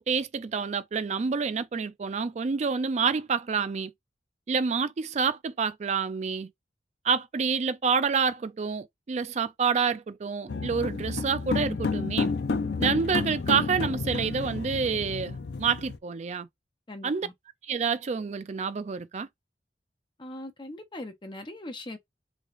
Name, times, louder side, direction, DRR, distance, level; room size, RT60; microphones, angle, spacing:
voice 1, 0.0-3.9 4.5-6.5 7.0-12.3 12.8-16.5 17.0-17.3 17.6-19.3, right 5 dB, 40° right, 0.3 m, -28 dB
sound 1, 10.5-16.0, left 4 dB, 60° left, 0.4 m, -30 dB
voice 2, 16.9-17.3 20.2-22.0, left 1 dB, 25° left, 0.7 m, -40 dB
3.7 x 3.3 x 2.4 m
head